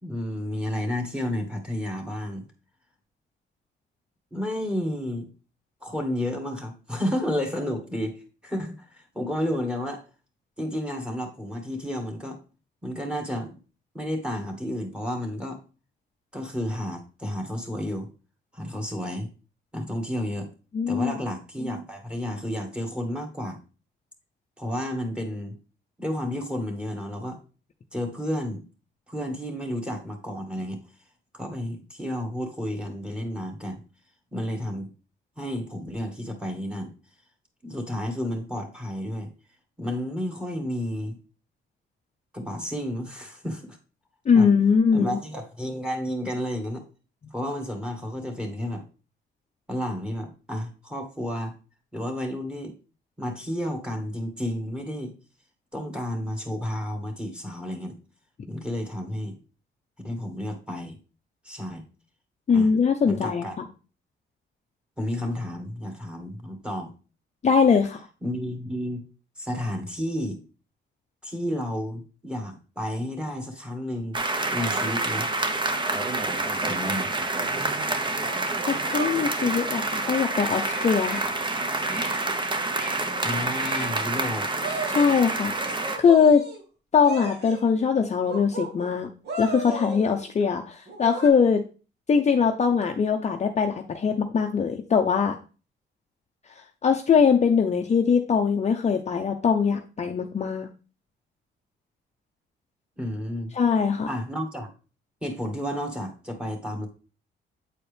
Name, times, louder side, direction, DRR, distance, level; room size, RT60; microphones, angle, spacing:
voice 1, 0.0-2.5 4.3-5.3 5.8-10.1 10.6-12.4 12.8-13.6 13.9-15.6 16.3-18.1 18.5-19.3 19.7-20.5 20.9-23.6 24.6-25.6 26.0-27.4 27.9-28.7 29.1-30.8 31.3-33.8 34.3-34.9 35.4-36.9 37.6-39.3 39.8-41.2 42.3-43.8 44.3-44.5 44.9-46.8 47.3-48.8 49.7-51.6 51.9-52.7 53.2-55.1 55.7-58.0 58.5-59.3 60.0-61.0 61.4-61.8 62.5-62.7 63.1-63.6 65.0-66.9 68.2-69.0 69.4-70.4 71.2-74.2 74.5-75.3 76.6-77.1 83.2-84.5 103.0-103.6 104.1-104.7 105.2-106.9, equal, 5° right, 4 dB, 1.7 m, -31 dB
voice 2, 20.7-21.1 44.3-45.2 62.5-63.6 67.4-68.1 78.7-81.2 84.9-85.6 86.0-86.5 86.9-89.1 89.4-91.6 92.1-95.4 96.6-100.7 103.5-104.1, left 6 dB, 35° left, 4 dB, 0.6 m, -22 dB
sound 1, 74.1-86.0, right 2 dB, 25° right, 0.9 m, -28 dB
sound 2, 77.4-77.5 78.2-79.2 79.8-81.3 81.8-82.2 82.7-83.1 83.5-84.0 84.6-85.2 85.6-86.6 87.0-87.6 88.2-88.9 89.2-90.3 90.9-91.3, right 3 dB, 60° right, 1.8 m, -36 dB
8.2 x 4.3 x 3.4 m, 0.35 s
cardioid pair, 90°, 20 cm